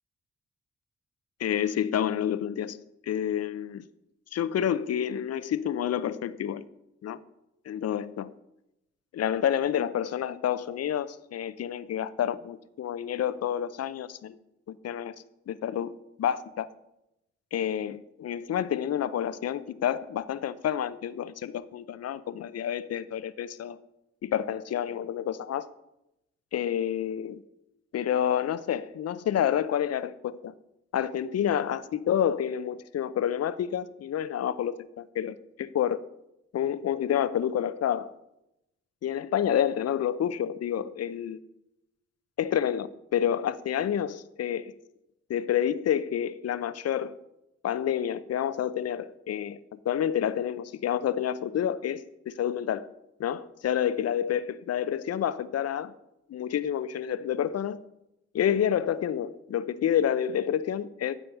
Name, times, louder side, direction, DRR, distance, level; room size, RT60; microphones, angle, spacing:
voice 1, 1.4-3.8 4.3-6.6 7.0-7.2 7.7-8.3 9.1-14.4 14.7-15.2 15.5-16.7 17.5-23.8 24.2-25.7 26.5-27.4 27.9-30.5 30.9-36.0 36.5-38.1 39.0-41.4 42.4-44.7 45.3-47.2 47.6-49.6 49.9-52.9 53.2-55.9 56.3-57.8 58.3-61.2, left 9 dB, 55° left, 15 dB, 0.5 m, -29 dB
9.1 x 4.3 x 5.4 m, 0.88 s
supercardioid pair, 45°, 30 cm